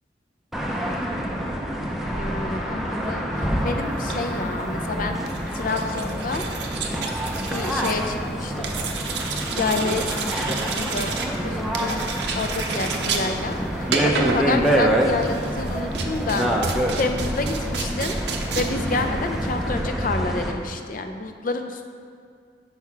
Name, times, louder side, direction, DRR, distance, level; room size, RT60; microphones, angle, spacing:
sound 1, 0.5-20.5, equal, ahead, 0.5 m, -26 dB
voice 1, 2.1-5.2 5.5-6.4 7.5-8.7 9.5-12.1 12.3-18.2 18.5-21.9, left 3 dB, 50° left, 6 dB, 0.5 m, -29 dB
sound 2, 3.9-19.9, right 4 dB, 65° right, 0.7 m, -32 dB
6.4 x 4.7 x 5.6 m, 2.2 s
head